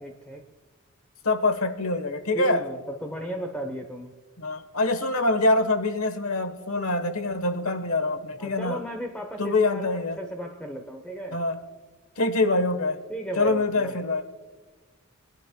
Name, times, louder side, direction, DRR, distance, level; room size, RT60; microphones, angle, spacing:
voice 1, 0.0-0.5 2.3-4.1 8.4-11.4 13.1-14.0, right 1 dB, 5° left, 4 dB, 0.9 m, -35 dB
voice 2, 1.2-2.6 4.4-8.8 9.4-10.2 11.3-11.6 12.2-13.0 13.4-14.2, left 2 dB, 75° left, 10 dB, 1.2 m, -25 dB
24.5 x 11.5 x 2.2 m, 1.3 s
head